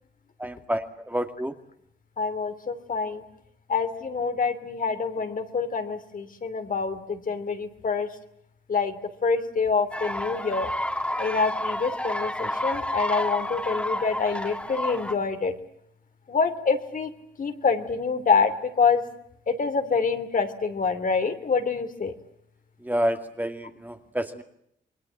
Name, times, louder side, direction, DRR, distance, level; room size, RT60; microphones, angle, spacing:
voice 1, 0.4-1.5 22.8-24.4, equal, 10° right, 6 dB, 2.2 m, -29 dB
voice 2, 2.2-3.2 3.7-8.1 8.7-10.7 11.2-15.5 16.3-17.1 17.4-19.0 19.5-22.1, left 5 dB, 50° left, 8 dB, 3.0 m, -26 dB
sound 1, 9.9-15.1, left 1 dB, 5° left, 2.7 m, -30 dB
28.0 x 22.0 x 7.7 m, 0.74 s
cardioid pair, 80°, 18 cm